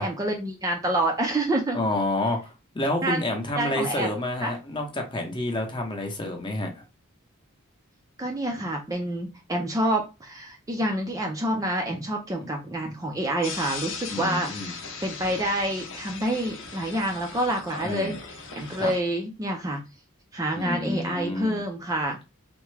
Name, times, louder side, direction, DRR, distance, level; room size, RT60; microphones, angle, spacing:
voice 1, 0.0-1.8 3.0-3.2 3.6-4.1 4.4-4.5 8.2-19.8 20.3-22.2, right 1 dB, 15° right, 2 dB, 0.4 m, -28 dB
voice 2, 1.7-6.7 14.1-14.8 17.8-18.1 18.8-18.9 20.6-21.6, left 1 dB, 20° left, 3 dB, 0.7 m, -29 dB
sound 1, 13.4-19.0, left 4 dB, 60° left, 0.7 m, -38 dB
3.5 x 2.1 x 3.2 m, 0.27 s
head